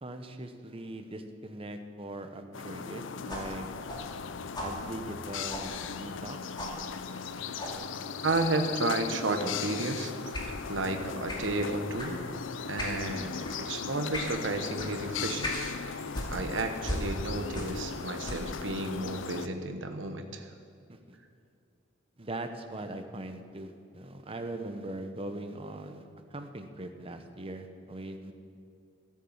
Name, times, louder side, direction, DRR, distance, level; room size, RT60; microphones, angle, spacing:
voice 1, 0.0-3.7 4.6-6.4 20.9-21.2 22.2-26.0 26.3-28.3, right 1 dB, 30° right, 6 dB, 0.9 m, -40 dB
sound 1, 2.5-19.5, left 6 dB, 90° left, 0.5 m, -38 dB
sound 2, 3.3-6.3 6.6-6.8 7.6-7.8 8.2-8.5 9.2-9.5 10.3-10.5 11.3-11.5 12.0-12.2 12.8-13.0 13.4-13.6 14.1-14.4 14.8-14.9 15.4-15.7 16.1-17.9 18.2-18.6, left 1 dB, 25° left, 2.3 m, -38 dB
voice 2, 8.2-10.4 10.7-12.2 12.6-15.5 15.9-20.5, right 2 dB, 80° right, 6 dB, 1.1 m, -32 dB
14.5 x 8.4 x 7.3 m, 2.4 s
head